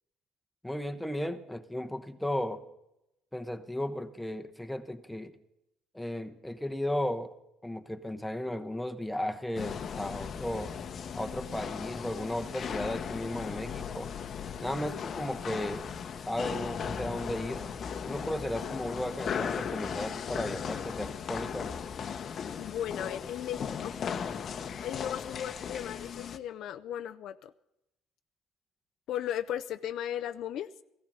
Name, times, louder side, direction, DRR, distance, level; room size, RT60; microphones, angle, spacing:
voice 1, 0.6-2.6 3.3-5.3 5.9-7.3 7.6-10.7 11.1-14.1 14.6-15.9 16.2-17.7 18.1-21.7, left 1 dB, 5° left, 7 dB, 1.0 m, -35 dB
sound 1, 9.5-26.4, left 7 dB, 45° left, 0.9 m, -37 dB
voice 2, 22.6-23.9 24.8-27.5 29.1-30.7, left 10 dB, 65° left, 12 dB, 0.5 m, -36 dB
16.0 x 14.5 x 5.5 m, 0.87 s
cardioid pair, 100°, 0 cm